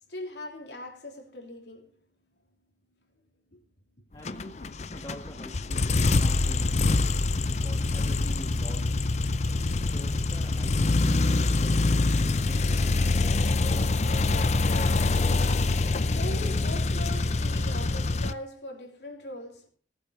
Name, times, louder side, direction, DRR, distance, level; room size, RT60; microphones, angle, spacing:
voice 1, 0.1-1.9 3.5-3.6 15.9-19.7, left 1 dB, 75° left, 3.2 m, -40 dB
voice 2, 4.1-6.8 7.4-8.9 9.8-11.9 12.4-13.8, equal, 25° left, 1.6 m, -45 dB
sound 1, 4.2-18.3, left 3 dB, 40° left, 0.6 m, -25 dB
18.5 x 8.1 x 4.6 m
head